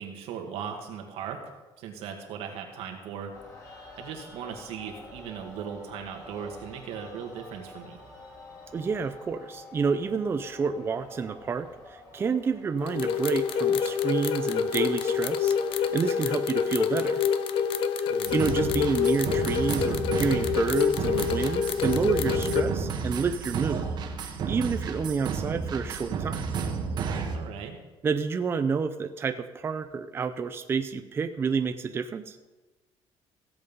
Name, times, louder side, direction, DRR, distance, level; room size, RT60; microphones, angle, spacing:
voice 1, 0.0-1.4 1.8-3.3 3.9-8.0 18.1-18.5 27.3-27.8, right 7 dB, 90° right, 3 dB, 2.1 m, -38 dB
sound 1, 3.3-16.7, left 2 dB, 30° left, 3.0 m, -48 dB
voice 2, 8.7-17.2 18.3-23.9 24.2-26.6 28.0-32.4, right 5 dB, 25° right, 9 dB, 0.5 m, -29 dB
sound 2, 12.8-22.6, left 7 dB, 60° left, 0.8 m, -27 dB
sound 3, 18.2-27.4, right 5 dB, 45° right, 1.5 m, -32 dB
16.0 x 8.1 x 5.4 m, 1.2 s
cardioid pair, 160°, 10 cm